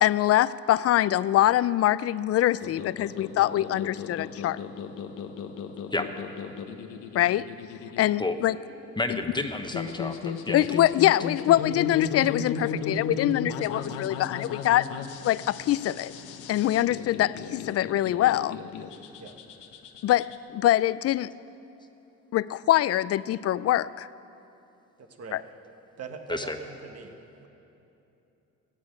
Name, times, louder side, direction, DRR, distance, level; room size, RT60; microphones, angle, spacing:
voice 1, 0.0-4.6 7.1-7.5 8.0-8.6 9.1-9.2 10.5-14.9 15.2-16.1 16.5-18.6 20.0-21.3 22.3-24.1, left 13 dB, 55° left, 18 dB, 0.4 m, -24 dB
sound 1, 2.6-20.4, left 6 dB, 90° left, 1.0 m, -36 dB
voice 2, 9.0-10.8 26.3-26.6, left 2 dB, 15° left, 6 dB, 1.0 m, -30 dB
voice 3, 25.0-25.4 26.0-27.1, right 5 dB, 55° right, 5 dB, 1.6 m, -41 dB
15.5 x 8.5 x 9.5 m, 2.9 s
cardioid pair, 90°, 30 cm